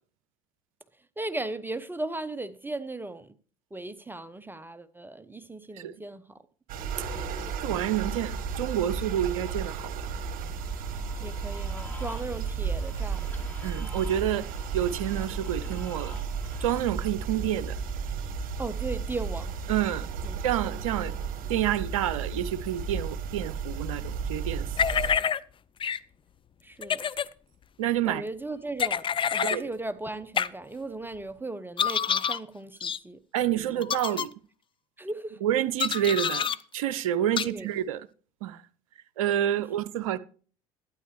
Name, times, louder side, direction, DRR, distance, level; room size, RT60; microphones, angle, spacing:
voice 1, 1.2-3.3 3.7-6.2 11.2-13.2 18.6-19.5 20.2-20.4 26.6-27.0 28.0-29.0 29.3-33.2 33.5-33.7 35.0-35.4 37.4-37.7, right 2 dB, 10° right, 0.8 m, -36 dB
sound 1, 6.7-25.1, right 6 dB, 55° right, 1.5 m, -34 dB
voice 2, 7.6-9.9 13.6-14.5 14.7-16.1 16.6-17.8 19.7-20.1 20.4-21.1 21.5-24.6 27.8-28.2 29.5-29.6 33.3-34.3 35.4-38.1 38.4-38.6 39.2-40.2, right 11 dB, 75° right, 0.5 m, -28 dB
sound 2, 10.6-16.8, left 1 dB, 10° left, 4.6 m, -48 dB
sound 3, 24.8-25.4 25.8-26.0 26.8-27.3 28.8-29.6 30.4-30.5 31.8-32.4 32.8-33.0 33.8-34.3 35.8-36.6 37.4-37.5, left 7 dB, 30° left, 0.5 m, -27 dB
12.0 x 9.5 x 3.2 m
hypercardioid pair, 60°, 17 cm